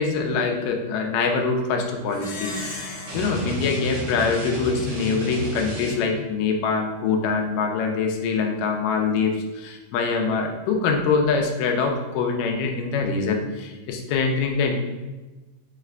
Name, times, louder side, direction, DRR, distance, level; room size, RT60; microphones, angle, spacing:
voice 1, 0.0-2.6 2.8-14.8, left 4 dB, 85° left, 3 dB, 2.2 m, -24 dB
Plucked string instrument, 2.1-4.9, left 2 dB, 70° left, 1.7 m, -37 dB
sound 1, 3.1-6.3, right 2 dB, 65° right, 2.0 m, -32 dB
5.4 x 2.4 x 3.2 m, 1.2 s
omnidirectional pair, 3.7 m